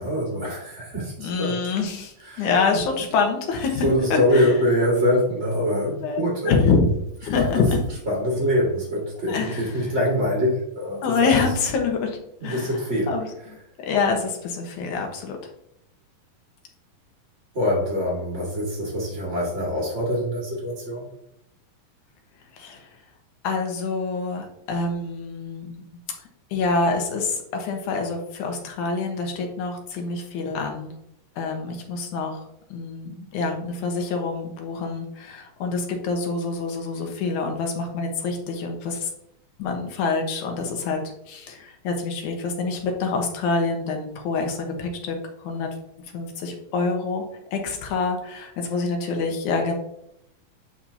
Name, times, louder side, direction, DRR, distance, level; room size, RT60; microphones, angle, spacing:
voice 1, 0.0-1.8 2.2-2.5 3.8-6.6 7.3-7.7 8.0-11.0 11.3-11.5 12.4-13.1 13.4-13.5 17.5-21.1, equal, 30° right, -4 dB, 1.5 m, -24 dB
voice 2, 1.2-4.5 6.0-6.2 6.5-6.9 7.2-7.8 9.3-9.7 11.0-12.7 13.1-13.3 13.8-15.5 22.5-22.9 23.4-25.8 26.5-30.9 31.4-32.4 32.7-39.1 39.6-41.0 41.3-45.7 46.1-47.2 47.5-49.7, left 4 dB, 70° left, 3 dB, 2.4 m, -26 dB
9.1 x 5.9 x 2.8 m, 0.78 s
omnidirectional pair, 4.0 m